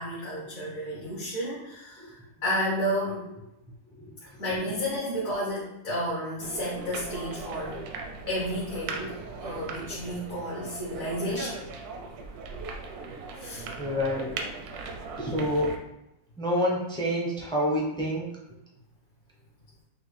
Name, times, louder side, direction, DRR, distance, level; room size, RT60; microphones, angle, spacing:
voice 1, 0.0-2.2 2.4-3.3 4.2-7.8 8.3-11.6 13.4-13.7, equal, 65° left, -6 dB, 1.4 m, -32 dB
sound 1, 6.4-15.8, right 4 dB, 80° right, 1.1 m, -39 dB
voice 2, 13.8-14.3 15.2-15.8 16.4-18.3, equal, 5° left, -3 dB, 0.3 m, -27 dB
5.8 x 2.3 x 3.2 m, 0.88 s
omnidirectional pair, 1.6 m